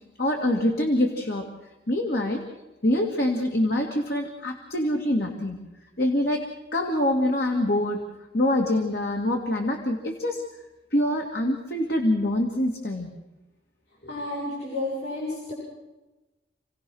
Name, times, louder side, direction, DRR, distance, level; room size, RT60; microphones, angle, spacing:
voice 1, 0.2-1.5 1.9-2.4 2.8-5.6 6.0-8.0 8.3-10.5 10.9-13.1, left 1 dB, 55° left, 1 dB, 2.3 m, -25 dB
voice 2, 14.0-15.5, left 2 dB, 70° left, -5 dB, 7.6 m, -31 dB
29.0 x 17.5 x 6.3 m, 1.1 s
head